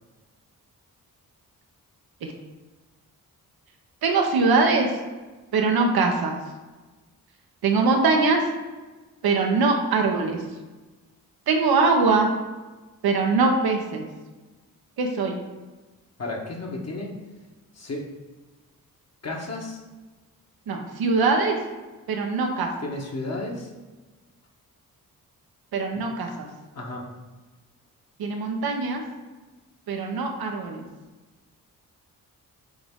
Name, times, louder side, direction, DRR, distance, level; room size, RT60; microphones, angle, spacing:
voice 1, 4.0-4.9 5.5-6.3 7.6-8.4 9.2-10.4 11.5-12.3 13.0-14.1 15.0-15.4 20.7-21.6 22.1-22.7 25.7-26.5 28.2-29.0 29.9-30.8, right 4 dB, 85° right, 2 dB, 1.0 m, -22 dB
voice 2, 16.2-17.2 17.7-18.1 19.2-19.8 22.8-23.7 25.9-26.1 26.7-27.1, left 2 dB, 45° left, -1 dB, 1.3 m, -33 dB
7.6 x 3.6 x 3.7 m, 1.2 s
cardioid pair, 70°, 36 cm